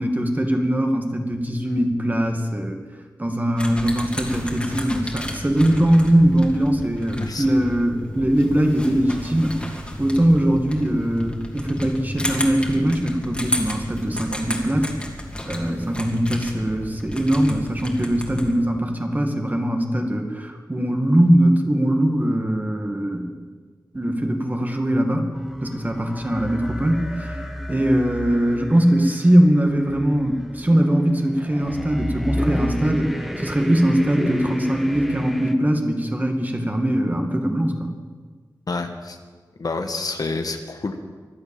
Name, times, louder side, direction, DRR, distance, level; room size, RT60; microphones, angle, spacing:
voice 1, 0.0-2.8 3.2-9.5 10.0-14.9 15.5-23.4 23.9-25.3 25.6-27.4 27.7-37.9, right 1 dB, 25° right, 3 dB, 2.2 m, -21 dB
sound 1, 3.6-18.5, equal, 15° left, 2.8 m, -32 dB
sound 2, 25.3-35.5, equal, ahead, 1.4 m, -32 dB
voice 2, 38.7-39.2 39.6-41.0, left 3 dB, 60° left, 6 dB, 1.4 m, -28 dB
24.0 x 8.2 x 7.3 m, 1.5 s
wide cardioid pair, 75°, 7 cm